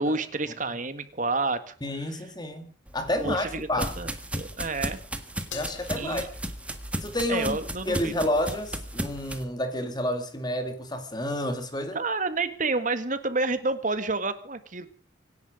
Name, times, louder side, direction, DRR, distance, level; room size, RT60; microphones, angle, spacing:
voice 1, 0.0-1.7 3.2-5.0 6.0-6.3 7.3-8.1 11.9-14.9, right 3 dB, 45° right, 1.8 m, -29 dB
voice 2, 1.8-3.9 5.5-6.3 7.0-7.6 7.9-12.0, left 1 dB, 20° left, 2.2 m, -30 dB
sound 1, 2.9-9.4, right 1 dB, 5° right, 1.6 m, -35 dB
Crash cymbal, 5.5-8.0, left 8 dB, 85° left, 2.0 m, -46 dB
25.5 x 11.0 x 5.1 m
head